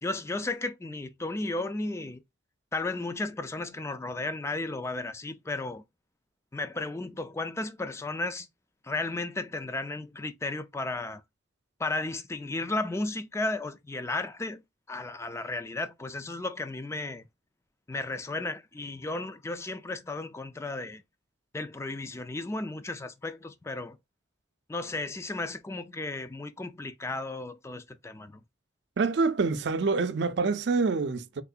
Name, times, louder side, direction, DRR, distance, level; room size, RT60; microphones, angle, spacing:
voice 1, 0.0-2.2 2.7-5.8 6.5-8.5 8.8-11.2 11.8-14.6 14.9-17.2 17.9-21.0 21.5-24.0 24.7-28.3, left 2 dB, 15° left, 0.3 m, -34 dB
voice 2, 29.0-31.4, right 4 dB, 60° right, 0.4 m, -26 dB
3.7 x 2.9 x 2.4 m
head